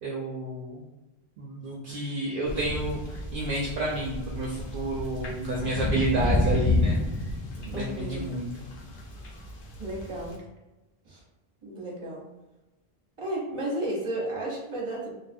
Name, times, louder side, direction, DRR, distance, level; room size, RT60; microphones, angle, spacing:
voice 1, 0.0-0.8 1.4-7.3 7.6-8.6, right 1 dB, 65° right, -3 dB, 0.7 m, -30 dB
sound 1, 2.5-10.3, left 2 dB, 65° left, 0.8 m, -30 dB
voice 2, 7.7-8.3 9.8-10.4 11.1-11.2 11.6-12.3 13.2-15.1, right 1 dB, 30° right, -4 dB, 0.8 m, -33 dB
2.6 x 2.3 x 2.5 m, 1.0 s
omnidirectional pair, 1.0 m